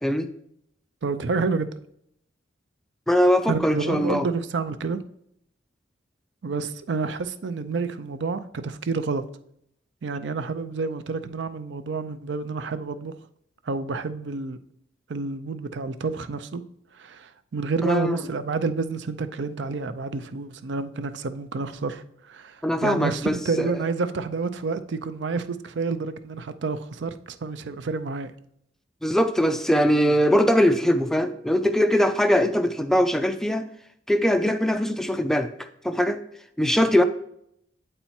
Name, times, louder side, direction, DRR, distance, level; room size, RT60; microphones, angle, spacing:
voice 1, 1.0-1.7 3.5-5.0 6.4-9.2 10.0-13.1 13.7-14.6 15.1-16.6 16.9-28.3, right 4 dB, 70° right, 0.5 m, -29 dB
voice 2, 3.1-4.3 17.8-18.2 22.6-23.7 29.0-33.6 34.1-35.5 35.8-36.2 36.6-37.0, equal, ahead, 0.3 m, -21 dB
8.0 x 4.4 x 4.3 m
head